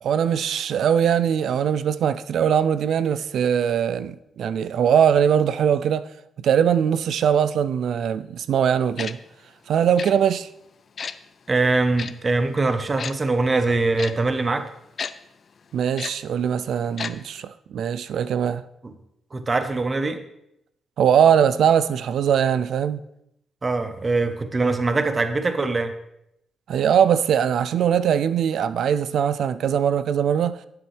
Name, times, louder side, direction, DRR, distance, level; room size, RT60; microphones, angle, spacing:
voice 1, 0.0-6.1 6.4-9.2 9.7-10.5 15.7-18.6 21.0-23.0 26.7-30.6, right 8 dB, 75° right, 0.4 m, -21 dB
Tick-tock, 9.0-9.1 10.0-10.1 11.0-11.1 12.0-12.1 13.0-13.1 14.0-14.1 15.0-15.1 16.0-16.1 17.0-17.1 17.4-17.5, left 6 dB, 55° left, 0.4 m, -31 dB
voice 2, 11.5-14.7 18.8-18.9 19.3-20.2 23.6-25.9, right 3 dB, 35° right, 1.0 m, -22 dB
10.5 x 7.8 x 3.4 m
cardioid pair, 65°, 0 cm